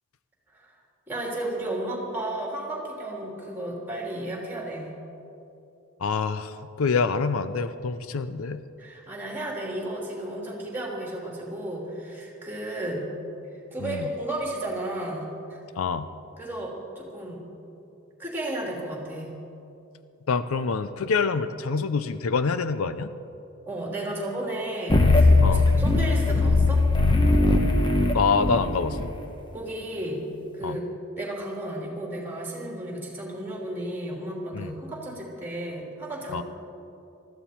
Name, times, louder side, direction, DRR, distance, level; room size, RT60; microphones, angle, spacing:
voice 1, 1.1-4.9 8.8-13.1 13.7-15.6 16.4-17.4 18.2-19.3 23.7-26.8 29.5-30.2 30.5-30.9 31.2-36.4, right 1 dB, 10° right, -2 dB, 3.1 m, -33 dB
voice 2, 6.0-8.6 13.8-14.1 15.8-16.1 20.3-23.1 25.4-25.7 28.1-29.1 30.6-30.8 34.5-34.7 36.3-36.4, left 5 dB, 80° left, 13 dB, 0.5 m, -26 dB
sound 1, 24.9-29.0, left 2 dB, 20° left, 1.0 m, -19 dB
20.0 x 14.0 x 4.4 m, 2.8 s
head